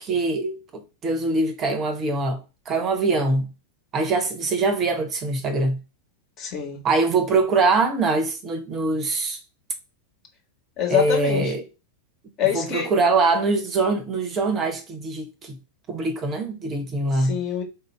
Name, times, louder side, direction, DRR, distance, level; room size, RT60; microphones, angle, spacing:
voice 1, 0.0-2.4 2.7-3.5 3.9-5.8 6.8-9.4 10.9-11.6 12.5-15.6 15.9-17.4, right 3 dB, 30° right, 0.8 m, -23 dB
voice 2, 6.4-6.8 10.8-11.5 12.4-12.9 17.1-17.6, left 9 dB, 35° left, 1.2 m, -25 dB
4.2 x 2.6 x 3.1 m
figure-of-eight pair, 90°, 0 cm